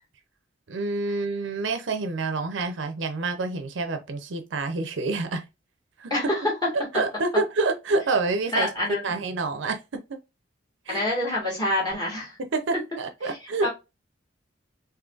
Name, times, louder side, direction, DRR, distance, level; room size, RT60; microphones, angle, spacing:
voice 1, 0.7-5.4 6.0-6.1 6.7-8.7 9.0-10.0 10.9-11.0 12.5-13.7, right 3 dB, 75° right, 0.5 m, -27 dB
voice 2, 6.1-6.4 8.5-9.2 10.9-12.3 13.6-13.7, left 1 dB, 20° left, 1.6 m, -26 dB
3.8 x 2.7 x 2.3 m
head